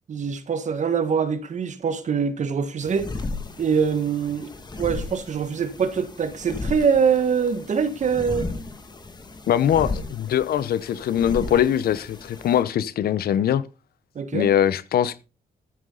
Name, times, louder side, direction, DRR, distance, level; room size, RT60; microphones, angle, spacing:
voice 1, 0.1-3.1 3.6-4.5 4.8-8.5 14.2-14.5, right 6 dB, 50° right, 1.8 m, -24 dB
sound 1, 2.8-12.6, left 3 dB, 25° left, 2.2 m, -35 dB
voice 2, 9.5-13.6 14.3-15.2, left 10 dB, 80° left, 0.9 m, -22 dB
13.5 x 10.0 x 4.0 m
cardioid pair, 115°, 16 cm